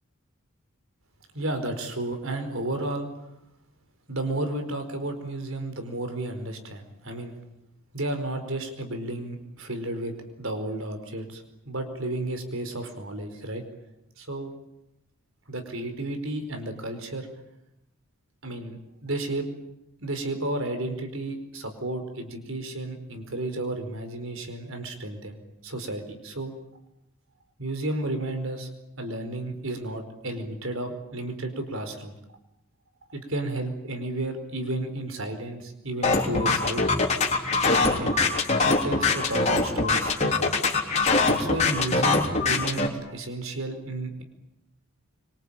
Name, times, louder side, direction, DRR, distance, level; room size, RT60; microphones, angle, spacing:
voice 1, 1.3-3.1 4.1-7.4 7.9-13.6 14.2-14.5 15.5-17.3 18.4-19.5 20.0-26.5 27.6-28.7 29.0-32.1 33.1-36.8 37.9-38.2 38.6-40.3 41.2-44.2, right 1 dB, 65° right, 7 dB, 4.8 m, -32 dB
sound 1, 36.0-42.9, left 3 dB, 30° left, 3.7 m, -23 dB
25.5 x 24.5 x 8.9 m, 0.86 s
head